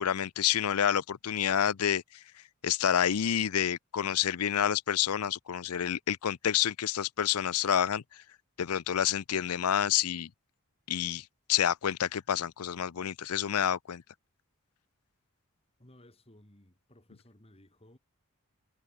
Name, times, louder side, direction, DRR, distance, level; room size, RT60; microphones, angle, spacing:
voice 1, 0.0-2.0 2.6-8.2 8.6-10.3 10.9-14.0, left 9 dB, 80° left, 0.5 m, -28 dB
voice 2, 15.8-18.0, left 1 dB, 25° left, 3.9 m, -58 dB
head